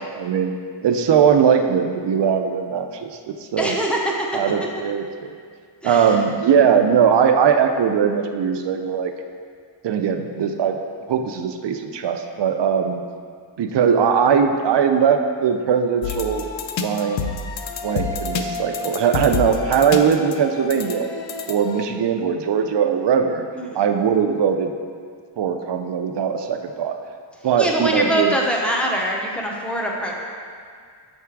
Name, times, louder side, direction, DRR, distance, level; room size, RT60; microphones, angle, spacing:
voice 1, 0.1-0.6 0.8-3.7 4.3-5.3 5.8-9.1 9.8-10.8 11.1-13.0 13.6-16.5 16.8-17.3 17.8-21.1 21.5-23.5 23.7-24.7 25.4-27.0 27.4-28.3, right 7 dB, 70° right, 6 dB, 0.5 m, -20 dB
voice 2, 3.6-4.3 5.8-6.2 23.5-23.8 27.6-30.1, right 1 dB, 5° left, -2 dB, 0.7 m, -23 dB
sound 1, 16.0-21.8, left 5 dB, 85° left, 0.5 m, -29 dB
6.6 x 3.6 x 4.6 m, 2.1 s
wide cardioid pair, 145°, 44 cm